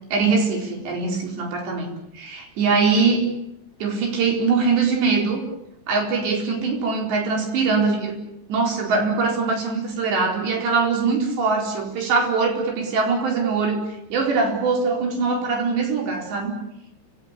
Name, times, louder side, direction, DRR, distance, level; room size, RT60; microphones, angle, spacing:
voice 1, 0.1-3.3 3.8-5.4 5.9-8.2 8.5-13.8 14.1-16.6, right 4 dB, 70° right, 2 dB, 6.5 m, -22 dB
28.5 x 17.5 x 9.8 m, 0.83 s
omnidirectional pair, 5.1 m